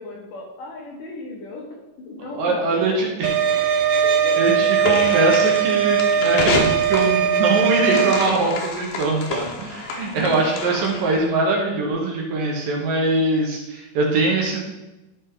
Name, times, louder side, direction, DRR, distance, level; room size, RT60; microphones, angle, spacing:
voice 1, 0.0-2.9 3.9-4.4, left 2 dB, 65° left, -1 dB, 2.6 m, -36 dB
voice 2, 2.3-3.3 4.4-14.6, right 2 dB, 65° right, -1 dB, 2.9 m, -22 dB
sound 1, 3.2-8.3, right 7 dB, 85° right, 2.9 m, -19 dB
sound 2, 4.8-11.2, left 3 dB, 80° left, 3.1 m, -29 dB
12.5 x 5.2 x 3.8 m, 1.0 s
omnidirectional pair, 4.4 m